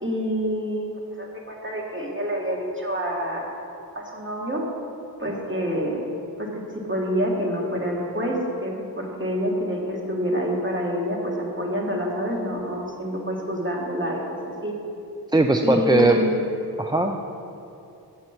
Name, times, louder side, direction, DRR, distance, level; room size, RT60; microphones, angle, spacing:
voice 1, 0.0-0.9 1.2-3.5 3.9-4.6 5.2-6.1 6.4-6.6 6.9-14.4 14.6-14.7 15.6-16.4, equal, 30° right, -2 dB, 1.7 m, -27 dB
voice 2, 15.3-16.2 16.8-17.2, right 2 dB, 10° right, 4 dB, 0.3 m, -19 dB
7.7 x 7.1 x 5.8 m, 2.7 s
wide cardioid pair, 70°, 39 cm